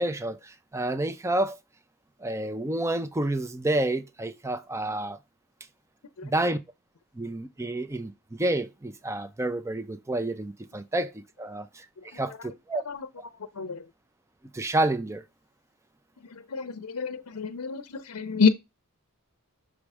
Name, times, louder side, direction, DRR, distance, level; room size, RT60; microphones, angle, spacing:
voice 1, 0.0-1.6 2.2-5.2 6.2-6.6 7.2-12.8 14.5-15.2, right 1 dB, 15° right, 0.5 m, -29 dB
voice 2, 16.3-18.5, left 5 dB, 70° left, 0.6 m, -27 dB
6.2 x 3.2 x 4.8 m
head